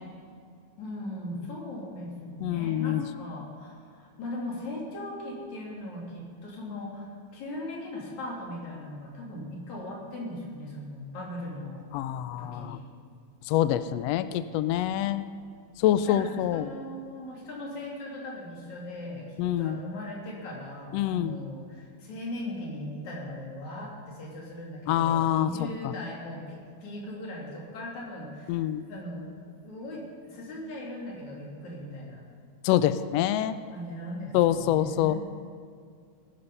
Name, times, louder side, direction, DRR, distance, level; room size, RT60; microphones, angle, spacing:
voice 1, 0.8-11.8 12.4-12.9 16.0-32.2 33.7-35.2, left 1 dB, 65° left, -3 dB, 4.4 m, -39 dB
voice 2, 2.4-3.0 11.9-12.8 13.5-15.2 15.8-16.7 19.4-19.8 20.9-21.4 24.9-25.5 28.5-28.9 32.6-33.6 34.3-35.2, left 12 dB, 90° left, 13 dB, 1.5 m, -25 dB
19.0 x 11.0 x 5.5 m, 2.2 s
omnidirectional pair, 3.5 m